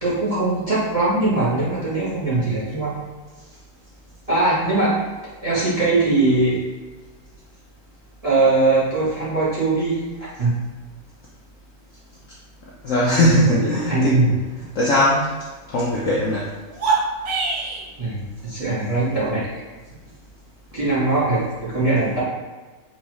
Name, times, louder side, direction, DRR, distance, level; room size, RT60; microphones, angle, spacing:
voice 1, 0.0-3.0 4.3-5.0 5.4-6.6 8.2-10.5 13.3-14.3 18.0-19.6 20.7-22.2, right 2 dB, 25° right, -9 dB, 1.0 m, -21 dB
voice 2, 12.8-14.2 14.8-15.3 15.7-16.5, left 1 dB, 65° left, -5 dB, 0.8 m, -19 dB
sound 1, 16.7-17.9, right 4 dB, 70° right, 0.6 m, -23 dB
4.3 x 2.7 x 3.0 m, 1.3 s
omnidirectional pair, 1.9 m